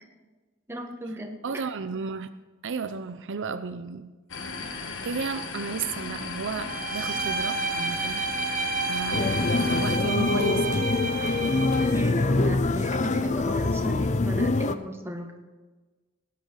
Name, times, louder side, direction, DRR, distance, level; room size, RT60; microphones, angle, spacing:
voice 1, 0.7-1.6 11.9-15.3, equal, 10° right, 2 dB, 1.5 m, -36 dB
voice 2, 1.4-2.3 2.6-4.1 5.0-9.3 9.6-10.9, right 5 dB, 60° right, 11 dB, 0.6 m, -33 dB
sound 1, 4.3-10.0, left 4 dB, 60° left, 1.5 m, -36 dB
Bowed string instrument, 6.7-12.0, right 3 dB, 40° right, 1.3 m, -30 dB
sound 2, 9.1-14.8, left 3 dB, 35° left, 0.5 m, -24 dB
18.0 x 9.3 x 4.8 m, 1.3 s
head